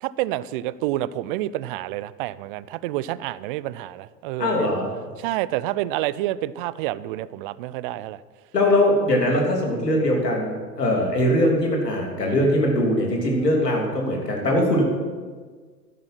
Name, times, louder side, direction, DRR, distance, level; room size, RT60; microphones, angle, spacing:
voice 1, 0.0-4.7 5.2-8.2, right 15 dB, 35° right, 18 dB, 0.4 m, -28 dB
voice 2, 4.4-4.9 8.5-14.8, left 1 dB, 85° left, 0 dB, 3.1 m, -21 dB
12.0 x 10.5 x 5.9 m, 1.5 s
figure-of-eight pair, 95°, 47 cm